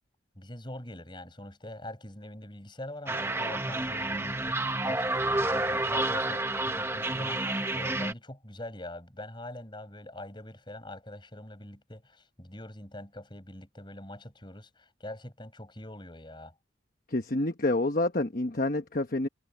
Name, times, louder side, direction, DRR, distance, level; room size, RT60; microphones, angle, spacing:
voice 1, 0.4-16.5, left 1 dB, 25° left, 5.6 m, -44 dB
sound 1, 3.1-8.1, right 2 dB, 15° right, 0.9 m, -29 dB
voice 2, 17.1-19.3, left 2 dB, 45° left, 1.1 m, -28 dB
head